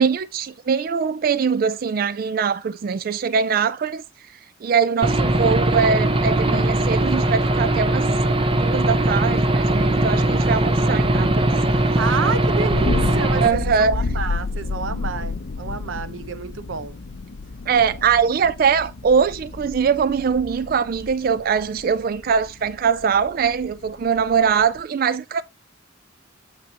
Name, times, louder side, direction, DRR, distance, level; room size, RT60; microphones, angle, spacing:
voice 1, 0.0-4.0 4.6-8.1 8.6-11.5 13.4-14.0 17.7-25.4, right 6 dB, 50° right, 0.3 m, -22 dB
Aircraft / Engine, 5.0-13.5, right 1 dB, 30° right, 0.7 m, -20 dB
Thunder, 9.0-24.8, left 3 dB, 60° left, 0.6 m, -32 dB
voice 2, 11.9-16.9, right 5 dB, 90° right, 0.7 m, -29 dB
7.8 x 6.0 x 2.8 m
head